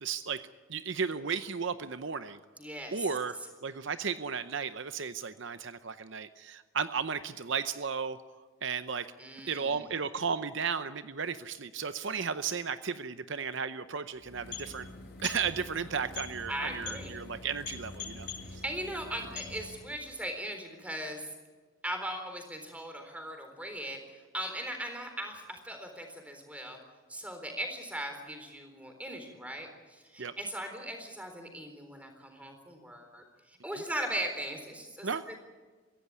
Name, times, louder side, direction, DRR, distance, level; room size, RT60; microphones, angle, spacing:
voice 1, 0.0-2.4 2.9-8.2 8.6-9.1 9.5-14.9 15.2-18.6 30.2-30.3 33.7-33.8 35.0-35.2, right 6 dB, 60° right, 11 dB, 0.7 m, -34 dB
voice 2, 2.6-3.1 9.2-9.9 16.5-17.2 18.4-21.3 21.8-26.8 27.1-35.1, right 1 dB, 5° right, 5 dB, 3.9 m, -39 dB
sound 1, 14.2-20.0, left 4 dB, 50° left, 6.1 m, -44 dB
23.5 x 16.0 x 9.7 m, 1.4 s
head